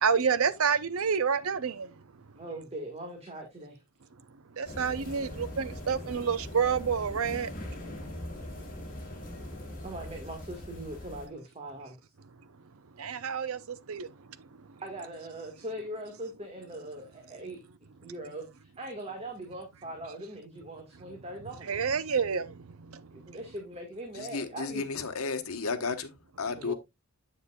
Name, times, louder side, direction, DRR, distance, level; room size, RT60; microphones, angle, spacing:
voice 1, 0.0-2.3 4.5-7.6 8.2-8.3 9.1-9.2 12.9-14.8 18.0-18.1 21.6-23.4, right 6 dB, 70° right, 0.6 m, -29 dB
voice 2, 2.3-3.8 9.8-12.0 14.8-17.6 18.0-21.7 23.1-24.8 26.6-26.7, right 1 dB, 30° right, 1.7 m, -41 dB
sound 1, 4.6-11.3, left 1 dB, 40° left, 2.7 m, -41 dB
voice 3, 24.1-26.7, left 4 dB, 75° left, 1.2 m, -33 dB
8.1 x 7.3 x 2.3 m
head